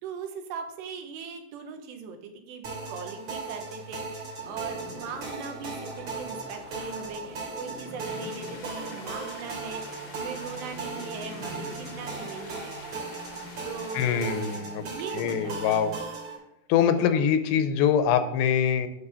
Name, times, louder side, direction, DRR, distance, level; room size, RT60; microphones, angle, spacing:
voice 1, 0.0-12.8 13.6-14.5 14.8-15.8 17.0-17.2, right 5 dB, 80° right, 5 dB, 3.1 m, -39 dB
sound 1, 2.6-16.4, right 4 dB, 40° right, 3.5 m, -38 dB
sound 2, 4.4-13.9, left 2 dB, 25° left, 1.4 m, -46 dB
sound 3, 8.0-14.6, left 4 dB, 65° left, 1.6 m, -48 dB
voice 2, 13.9-14.8 15.1-15.9 16.7-18.9, left 8 dB, 85° left, 10 dB, 2.9 m, -24 dB
10.0 x 4.4 x 6.9 m, 0.84 s
omnidirectional pair, 5.0 m